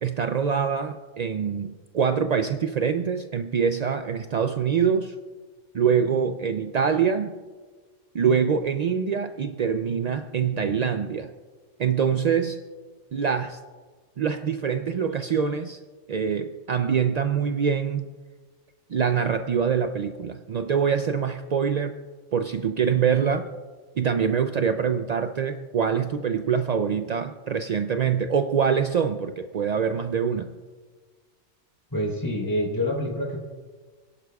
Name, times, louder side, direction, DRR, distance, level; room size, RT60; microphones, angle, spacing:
voice 1, 0.0-5.1 5.7-7.4 8.1-11.3 11.8-12.6 13.1-13.6 14.2-15.8 16.1-18.1 18.9-22.0 22.3-23.5 24.0-30.5, right 7 dB, 70° right, 8 dB, 0.4 m, -24 dB
voice 2, 31.9-33.4, left 1 dB, 15° left, -3 dB, 3.4 m, -27 dB
30.0 x 11.0 x 2.3 m, 1.5 s
omnidirectional pair, 1.3 m